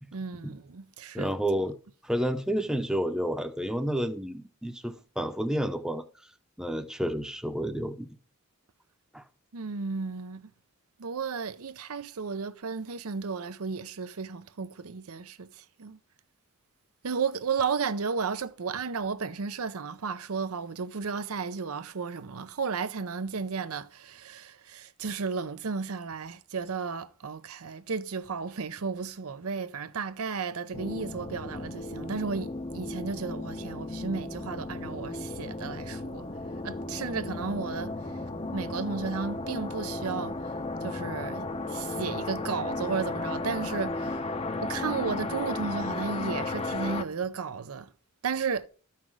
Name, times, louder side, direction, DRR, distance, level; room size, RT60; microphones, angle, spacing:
voice 1, 0.1-1.3 9.5-10.5 11.0-16.0 17.0-36.3 36.6-38.2 38.5-40.4 40.8-44.3 44.6-47.9 48.2-48.7, right 5 dB, 75° right, 0.7 m, -34 dB
voice 2, 1.1-1.7 2.0-6.0 6.6-8.1 9.1-9.2, equal, 5° right, 0.8 m, -30 dB
sound 1, 30.7-47.0, left 2 dB, 25° left, 0.7 m, -34 dB
13.5 x 5.8 x 4.7 m
head